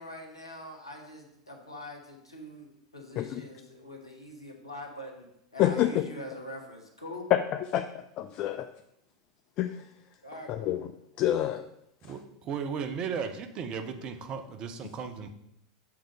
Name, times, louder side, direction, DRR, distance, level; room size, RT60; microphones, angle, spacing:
voice 1, 0.0-5.3 5.5-7.3 10.2-10.9, left 1 dB, 85° left, 1 dB, 1.2 m, -43 dB
voice 2, 5.6-6.0 7.3-7.4 7.7-8.7 9.6-9.7 10.5-10.8 11.2-11.6, left 12 dB, 40° left, 9 dB, 0.3 m, -27 dB
voice 3, 12.0-15.3, right 6 dB, 35° right, 8 dB, 0.7 m, -35 dB
7.3 x 3.7 x 5.3 m, 0.79 s
figure-of-eight pair, 85°, 2 cm